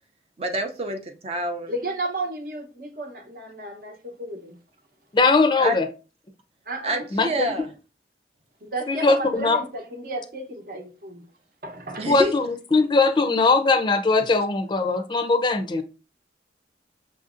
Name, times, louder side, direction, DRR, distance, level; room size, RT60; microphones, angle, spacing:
voice 1, 0.4-1.7 5.6-5.8 6.8-7.7 12.0-12.3, right 1 dB, 35° right, 0.5 m, -27 dB
voice 2, 1.7-4.6 6.7-7.0 8.6-11.2 11.6-12.1, right 2 dB, 55° right, 0.8 m, -33 dB
voice 3, 5.1-5.9 7.1-7.5 8.9-9.6 12.1-15.8, left 3 dB, 25° left, 0.4 m, -20 dB
6.0 x 2.6 x 2.5 m
head